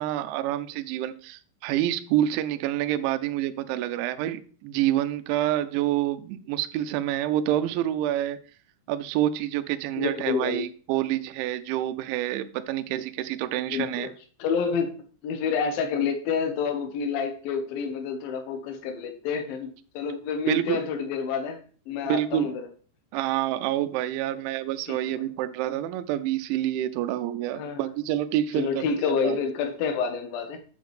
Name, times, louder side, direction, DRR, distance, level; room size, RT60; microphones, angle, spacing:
voice 1, 0.0-8.4 8.9-14.1 20.5-20.8 22.1-22.5 23.1-28.9 29.2-29.4, right 12 dB, 80° right, 2.8 m, -27 dB
voice 2, 10.0-10.6 13.5-14.1 14.4-14.9 15.2-19.7 19.9-21.6 21.9-22.7 24.9-25.2 27.5-27.9 28.6-30.6, left 5 dB, 75° left, 2.2 m, -28 dB
8.4 x 7.5 x 3.2 m
omnidirectional pair, 5.7 m